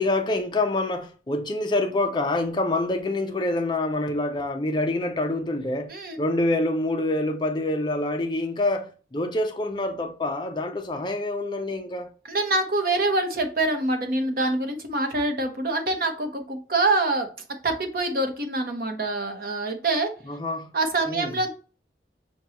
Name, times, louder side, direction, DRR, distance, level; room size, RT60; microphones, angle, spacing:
voice 1, 0.0-12.1 20.3-20.7 21.1-21.3, left 2 dB, 25° left, 0.5 m, -26 dB
voice 2, 5.9-6.2 12.3-17.3 17.6-20.1 20.7-21.5, right 2 dB, 55° right, 0.8 m, -25 dB
6.2 x 2.3 x 2.8 m
head